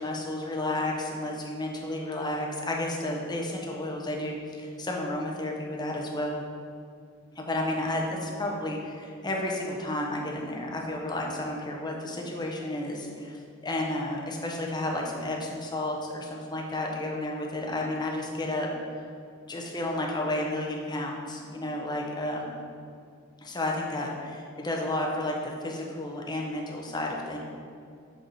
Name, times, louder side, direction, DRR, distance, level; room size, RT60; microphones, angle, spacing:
voice 1, 0.0-6.4 7.3-18.7 19.4-22.5 23.4-27.4, left 1 dB, 20° left, -1 dB, 0.9 m, -32 dB
6.1 x 4.9 x 5.3 m, 2.4 s
head